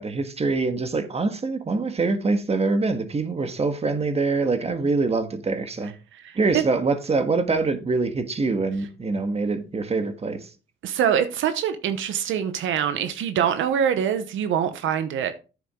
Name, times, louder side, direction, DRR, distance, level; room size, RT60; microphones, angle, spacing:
voice 1, 0.0-5.9 6.3-10.5, right 3 dB, 30° right, 1.5 m, -24 dB
voice 2, 6.2-6.6 10.8-15.3, right 8 dB, 80° right, 0.9 m, -24 dB
9.4 x 7.3 x 3.6 m
cardioid pair, 90°, 20 cm